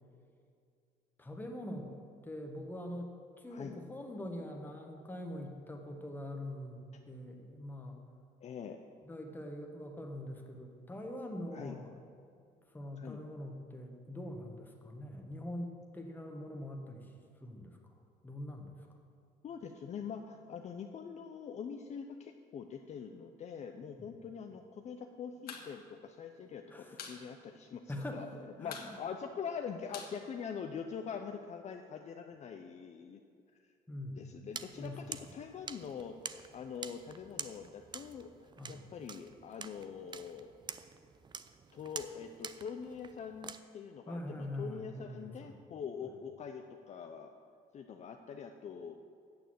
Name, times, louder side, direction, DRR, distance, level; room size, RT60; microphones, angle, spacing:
voice 1, 1.2-1.9 2.2-8.0 9.0-12.0 12.7-17.1 17.4-18.0 18.2-18.9 24.0-24.2 26.7-27.2 27.9-28.3 28.6-29.0 33.9-34.3 34.8-35.1 38.6-38.9 44.1-45.6, left 1 dB, 10° left, 2 dB, 1.4 m, -43 dB
voice 2, 8.4-8.8 11.5-11.8 13.0-13.2 19.4-28.3 28.6-33.2 34.2-36.2 36.5-40.5 41.7-47.3 47.7-49.0, left 6 dB, 40° left, 5 dB, 0.6 m, -44 dB
sound 1, 25.3-25.7 26.0-26.1 26.4-27.2 27.5-27.6 27.9-28.3 28.6-31.0, left 6 dB, 65° left, 1.4 m, -47 dB
sound 2, 34.5-43.6, right 6 dB, 25° right, 0.4 m, -48 dB
8.5 x 6.9 x 7.7 m, 2.3 s
cardioid pair, 110°, 17 cm